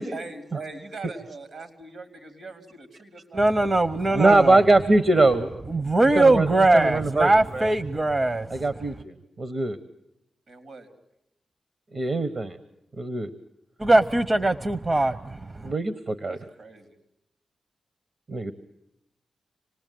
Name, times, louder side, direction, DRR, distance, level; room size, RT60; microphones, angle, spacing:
voice 1, 0.1-3.7 4.1-4.5 10.5-10.9 16.3-17.0, right 3 dB, 75° right, 8 dB, 3.7 m, -41 dB
voice 2, 3.3-4.6 5.7-8.6 13.8-15.7, right 2 dB, 35° right, 15 dB, 0.9 m, -21 dB
voice 3, 4.1-5.6 6.1-7.7 8.5-9.8 11.9-12.6 13.0-13.3 15.6-16.4 18.3-18.5, right 2 dB, 55° right, 12 dB, 1.2 m, -22 dB
27.5 x 19.0 x 9.4 m, 0.84 s
supercardioid pair, 40°, 0 cm